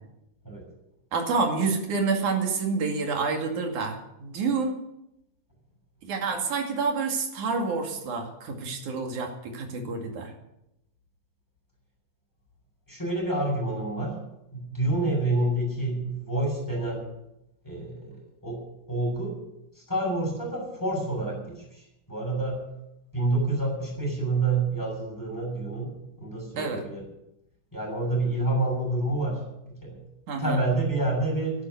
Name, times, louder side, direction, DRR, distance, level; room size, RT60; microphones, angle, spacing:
voice 1, 1.1-4.8 6.0-10.3 26.6-26.8 30.3-30.6, right 4 dB, 80° right, 3 dB, 3.8 m, -28 dB
voice 2, 12.9-14.1 14.5-17.0 17.6-18.6 18.9-19.3 19.9-21.4 21.7-21.8 22.1-22.6 23.1-25.9 26.2-27.0 27.7-29.4 29.8-30.0 30.4-31.5, right 2 dB, 5° left, -2 dB, 7.0 m, -28 dB
11.5 x 11.0 x 9.5 m, 0.86 s
omnidirectional pair, 3.5 m